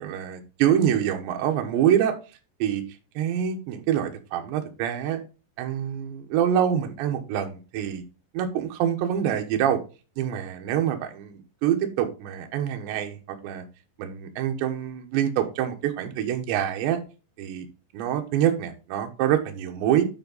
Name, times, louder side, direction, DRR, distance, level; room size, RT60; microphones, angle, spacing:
voice 1, 0.0-2.1 2.6-2.8 3.2-5.2 5.6-8.0 8.3-9.8 10.2-13.6 14.0-17.0 17.4-17.7 17.9-20.1, right 10 dB, 75° right, 4 dB, 3.2 m, -25 dB
9.8 x 4.6 x 3.9 m, 0.33 s
omnidirectional pair, 5.5 m